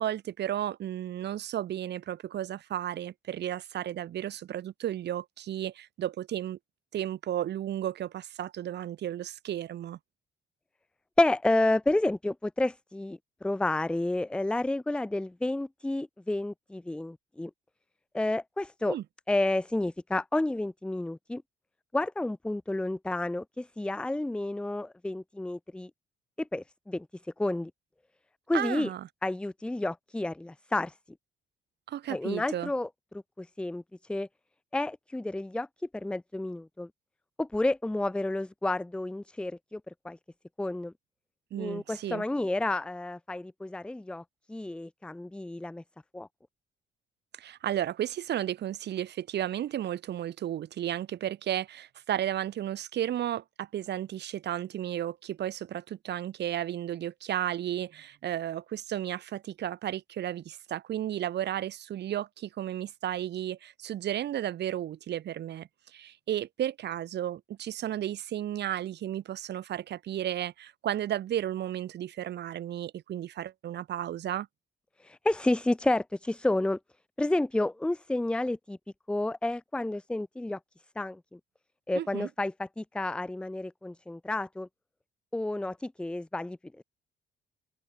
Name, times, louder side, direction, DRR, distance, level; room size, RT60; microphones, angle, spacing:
voice 1, 0.0-6.6 6.9-10.0 18.9-19.0 28.5-29.1 31.9-32.7 41.5-42.2 47.4-74.5 82.0-82.3, right 11 dB, 60° right, 0.6 m, -33 dB
voice 2, 11.2-17.5 18.1-19.0 19.3-21.4 21.9-25.9 26.4-27.7 28.5-28.9 29.2-30.9 32.1-32.9 33.1-33.8 34.1-34.3 34.7-35.7 35.9-36.9 37.4-40.2 40.6-40.9 41.6-44.2 44.5-45.8 46.1-46.3 75.0-76.8 77.2-78.8 79.1-80.6 81.0-81.4 81.9-84.7 85.3-86.8, left 2 dB, 5° left, 0.3 m, -30 dB
open air
cardioid pair, 90°, 20 cm